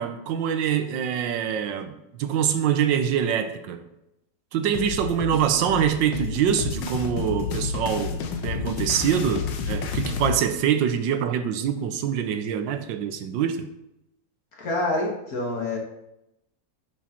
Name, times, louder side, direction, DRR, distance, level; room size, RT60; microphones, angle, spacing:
voice 1, 0.0-3.8 4.5-13.7, right 8 dB, 85° right, 9 dB, 1.4 m, -25 dB
sound 1, 4.7-10.4, left 6 dB, 80° left, 1.5 m, -30 dB
voice 2, 14.6-15.8, left 2 dB, 55° left, -1 dB, 1.9 m, -26 dB
9.3 x 6.3 x 3.0 m, 0.85 s
omnidirectional pair, 2.0 m